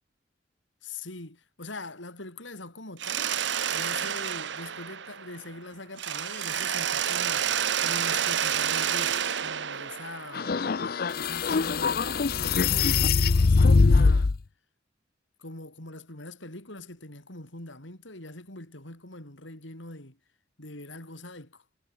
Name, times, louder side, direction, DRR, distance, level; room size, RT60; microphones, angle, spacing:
voice 1, 0.8-3.4 3.7-10.5 11.2-14.3 15.4-20.2 20.6-21.6, left 2 dB, 80° left, 5.5 m, -42 dB
Mechanisms, 3.0-5.6 6.0-10.8, right 9 dB, 70° right, 1.0 m, -29 dB
sound 1, 10.3-14.4, left 4 dB, 50° left, 0.5 m, -22 dB
head